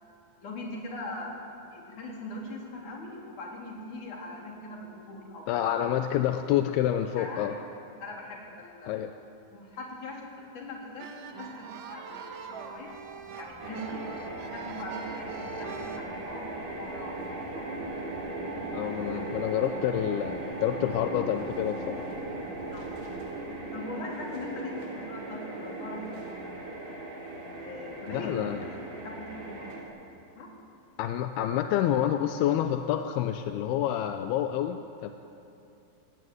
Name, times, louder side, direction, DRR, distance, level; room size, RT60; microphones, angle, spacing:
voice 1, 0.4-1.4 1.7-5.8 7.2-7.6 8.0-8.9 9.5-11.1 11.4-13.0 13.4-14.0 14.5-17.8 18.8-19.5 22.7-23.0 23.7-26.2 26.6-26.8 27.6-29.8 30.4-30.5, left 2 dB, 45° left, -2 dB, 4.8 m, -41 dB
voice 2, 5.5-7.5 8.9-9.1 18.7-22.0 28.1-28.6 31.0-35.1, left 11 dB, 75° left, 7 dB, 2.4 m, -28 dB
sound 1, 11.0-16.0, right 6 dB, 90° right, 3.9 m, -42 dB
sound 2, 12.4-23.4, right 4 dB, 55° right, 3.5 m, -46 dB
sound 3, 13.6-29.8, right 2 dB, 40° right, 4.2 m, -38 dB
27.0 x 16.5 x 9.5 m, 2.8 s
omnidirectional pair, 5.2 m